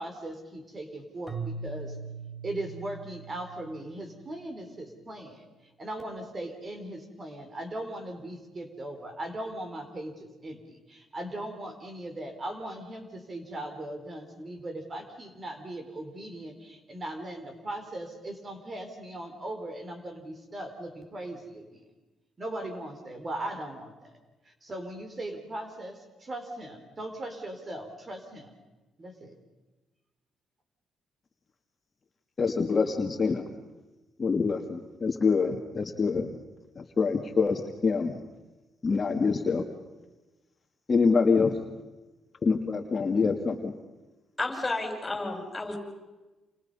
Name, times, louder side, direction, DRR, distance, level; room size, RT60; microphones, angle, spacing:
voice 1, 0.0-2.0 2.4-5.4 5.8-21.8 22.4-24.2 24.5-28.5 29.0-29.3, right 1 dB, 35° right, 6 dB, 4.3 m, -39 dB
Keyboard (musical), 1.3-4.4, right 4 dB, 15° right, 1.7 m, -40 dB
voice 2, 32.4-33.5 34.2-36.3 36.8-38.1 38.8-39.6 40.9-41.6 42.4-43.7, left 4 dB, 35° left, 3 dB, 2.0 m, -25 dB
voice 3, 44.4-45.8, left 2 dB, 20° left, 4 dB, 6.0 m, -31 dB
30.0 x 27.5 x 5.6 m, 1.1 s
cardioid pair, 90°, 0 cm